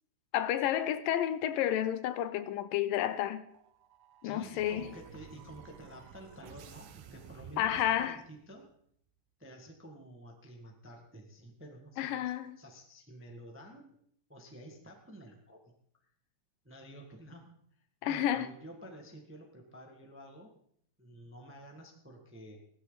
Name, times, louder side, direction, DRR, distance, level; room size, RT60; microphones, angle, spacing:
voice 1, 0.3-3.4 4.2-4.9 7.6-8.2 12.0-12.6 18.0-18.5, left 11 dB, 85° left, 2.4 m, -31 dB
sound 1, 3.5-8.5, right 8 dB, 90° right, 2.7 m, -53 dB
voice 2, 4.2-8.7 9.4-12.2 12.6-13.9 14.3-15.6 16.6-20.5 21.0-22.6, right 1 dB, 10° right, 0.8 m, -51 dB
16.5 x 12.5 x 4.1 m
omnidirectional pair, 3.9 m